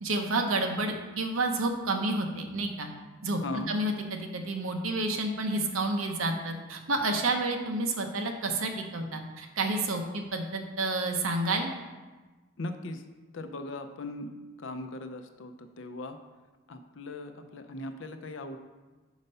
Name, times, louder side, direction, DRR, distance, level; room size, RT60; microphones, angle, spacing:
voice 1, 0.0-2.9 3.2-3.4 3.7-11.7, right 2 dB, 80° right, 4 dB, 0.8 m, -30 dB
voice 2, 3.4-3.7 12.6-13.0 13.3-14.3 14.6-16.2 16.7-18.6, left 2 dB, 65° left, 8 dB, 0.5 m, -39 dB
5.5 x 5.0 x 5.4 m, 1.2 s
head